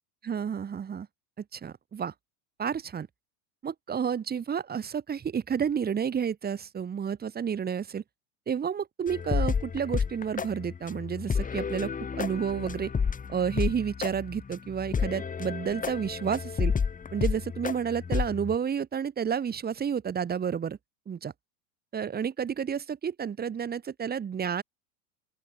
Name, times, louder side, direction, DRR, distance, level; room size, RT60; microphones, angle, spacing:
voice 1, 0.2-1.1 1.5-2.1 2.6-3.1 3.6-8.0 8.5-12.9 13.3-16.7 17.1-20.8 21.1-21.3 21.9-24.6, right 7 dB, 25° right, 2.8 m, -30 dB
sound 1, 9.1-18.6, left 6 dB, 20° left, 4.0 m, -31 dB
open air
supercardioid pair, 115°, 41 cm